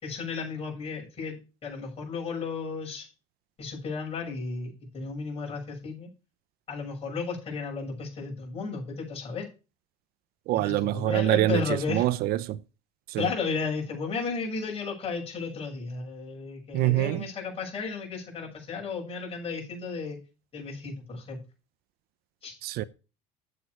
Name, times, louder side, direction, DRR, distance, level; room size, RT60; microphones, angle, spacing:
voice 1, 0.0-3.1 3.6-6.1 6.7-9.5 10.5-12.0 13.2-20.2 20.5-21.4 22.4-22.5, left 4 dB, 35° left, 6.6 m, -34 dB
voice 2, 10.5-11.6 11.9-12.6 13.1-13.3 16.7-17.3 22.6-22.8, right 15 dB, 65° right, 0.7 m, -25 dB
8.7 x 8.1 x 4.7 m
supercardioid pair, 105°, 17 cm